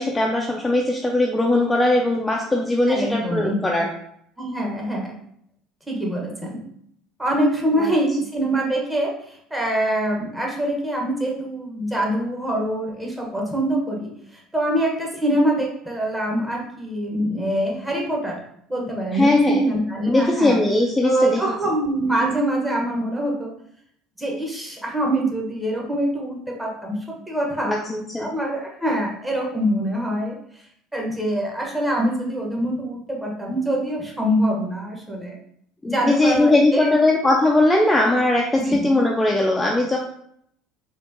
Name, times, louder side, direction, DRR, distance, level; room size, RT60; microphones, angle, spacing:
voice 1, 0.0-3.9 7.8-7.9 19.1-19.6 20.1-21.4 27.6-28.3 35.8-40.0, left 2 dB, 10° left, 0 dB, 0.5 m, -20 dB
voice 2, 2.9-3.6 4.4-5.1 5.9-6.6 7.2-18.4 18.7-20.6 21.0-23.5 24.2-27.0 27.3-27.8 28.2-30.4 30.9-35.4 35.9-37.0 38.5-39.0, right 1 dB, 10° right, -2 dB, 1.1 m, -24 dB
4.3 x 2.5 x 2.7 m, 0.69 s
figure-of-eight pair, 65°, 0 cm